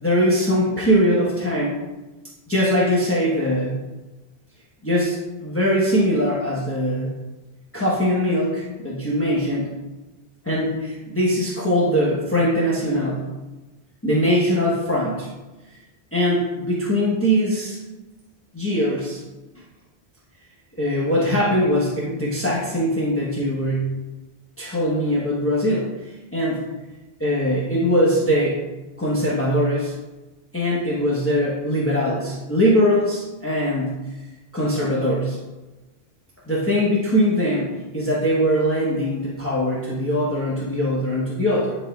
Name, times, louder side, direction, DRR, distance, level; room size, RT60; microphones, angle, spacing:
voice 1, 0.0-1.8 2.5-3.8 4.8-7.1 7.7-9.7 10.4-13.3 14.0-15.3 16.1-17.8 18.5-19.2 20.8-23.9 24.6-26.6 27.2-28.6 29.0-29.9 30.5-33.9 34.5-35.4 36.5-41.8, equal, 15° left, -6 dB, 1.1 m, -21 dB
11.0 x 4.3 x 2.4 m, 1.1 s
omnidirectional pair, 1.1 m